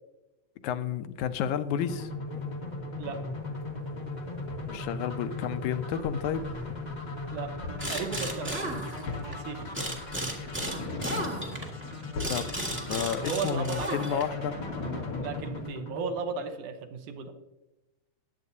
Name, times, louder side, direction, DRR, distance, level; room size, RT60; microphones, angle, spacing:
voice 1, 0.6-2.1 4.7-6.5 12.0-12.5 12.9-14.6, left 9 dB, 80° left, 10 dB, 2.0 m, -31 dB
sound 1, 1.8-16.7, left 2 dB, 30° left, 0.8 m, -39 dB
sound 2, 2.3-15.8, left 3 dB, 60° left, 3.0 m, -42 dB
sound 3, 7.8-9.4 9.7-14.4, right 1 dB, 15° right, 0.4 m, -34 dB
voice 2, 7.9-8.8 9.3-9.7 13.2-14.2 15.2-17.3, right 5 dB, 80° right, 6 dB, 2.5 m, -35 dB
20.5 x 8.2 x 2.7 m, 1.0 s
omnidirectional pair, 3.5 m